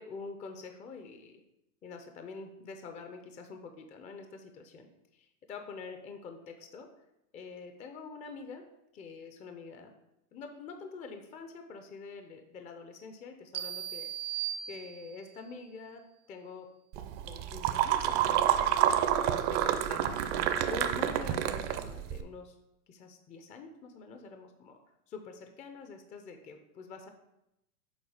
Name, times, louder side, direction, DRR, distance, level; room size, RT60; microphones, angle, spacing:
voice 1, 0.0-1.4 1.8-6.9 7.3-8.6 8.9-9.9 10.3-16.0 16.3-16.7 17.3-18.9 19.5-20.2 20.7-22.6 22.9-24.8 25.1-27.1, left 4 dB, 15° left, 6 dB, 0.5 m, -46 dB
sound 1, 13.5-15.4, right 11 dB, 85° right, 0.8 m, -38 dB
sound 2, 16.9-22.2, right 10 dB, 40° right, 0.6 m, -28 dB
7.2 x 4.5 x 4.8 m, 0.86 s
hypercardioid pair, 120°, 43 cm